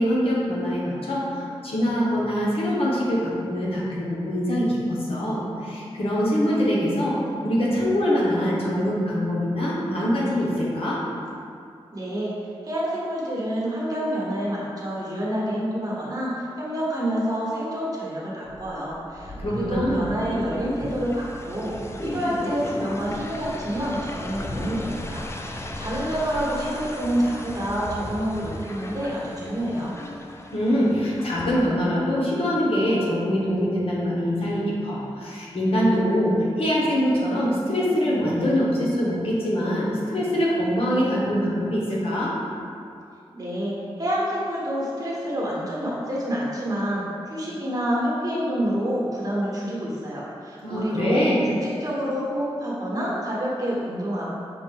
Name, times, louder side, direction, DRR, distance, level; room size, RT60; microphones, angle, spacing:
voice 1, 0.0-7.2 7.4-11.0 19.4-20.1 30.5-42.3 50.6-51.4, equal, 70° left, -6 dB, 1.1 m, -23 dB
voice 2, 11.9-12.4 12.6-21.7 22.0-29.9 43.3-47.0 47.3-54.3, equal, 40° right, -6 dB, 1.2 m, -28 dB
sound 1, 18.5-31.7, left 1 dB, 25° left, 0.4 m, -35 dB
6.0 x 2.4 x 3.6 m, 2.4 s
wide cardioid pair, 75°, 10 cm